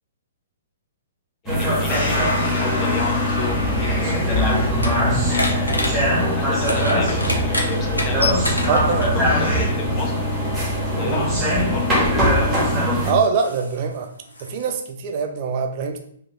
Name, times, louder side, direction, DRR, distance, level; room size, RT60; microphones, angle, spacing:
voice 1, 1.4-5.0 5.3-10.2 10.8-11.9, left 4 dB, 25° left, 2 dB, 0.4 m, -33 dB
sound 1, 1.5-13.1, equal, 10° right, 0.9 m, -22 dB
sound 2, 1.9-9.7, equal, 65° left, 1.1 m, -27 dB
sound 3, 4.0-9.3 10.4-10.6 11.3-14.7, left 1 dB, 85° left, 0.5 m, -29 dB
voice 2, 8.7-9.1 11.0-11.3 13.0-14.1 14.4-16.0, right 5 dB, 40° right, 3 dB, 0.4 m, -23 dB
2.6 x 2.0 x 3.1 m, 0.66 s
figure-of-eight pair, 120°, 0 cm